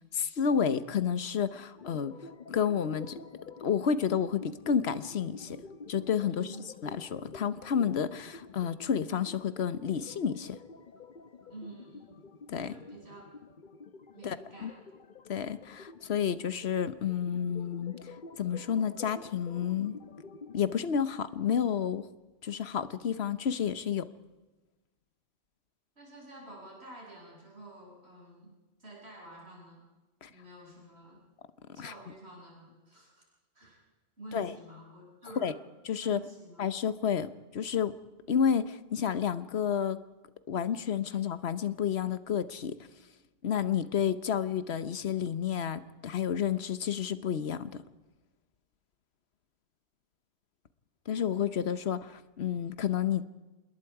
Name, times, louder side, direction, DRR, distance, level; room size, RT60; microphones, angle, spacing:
voice 1, 0.1-2.1 2.5-3.2 3.6-5.6 5.9-6.5 6.8-10.6 12.5-12.8 14.2-14.7 15.3-17.9 18.4-20.0 20.5-22.1 22.4-24.1 30.2-30.3 31.8-31.9 34.3-34.5 35.4-35.5 35.9-36.2 36.6-37.9 38.3-40.0 40.5-42.8 43.4-47.8 51.1-53.2, left 8 dB, 80° left, 14 dB, 1.2 m, -30 dB
sound 1, 1.8-20.8, left 4 dB, 50° left, 1.1 m, -49 dB
voice 2, 6.3-6.7 11.5-12.2 12.7-13.3 14.1-14.8 26.0-29.8 30.3-31.2 31.7-33.2 33.5-33.8 34.2-35.6 36.0-36.7, right 1 dB, 80° right, -2 dB, 7.1 m, -49 dB
27.0 x 21.0 x 4.8 m, 1.1 s
omnidirectional pair, 1.1 m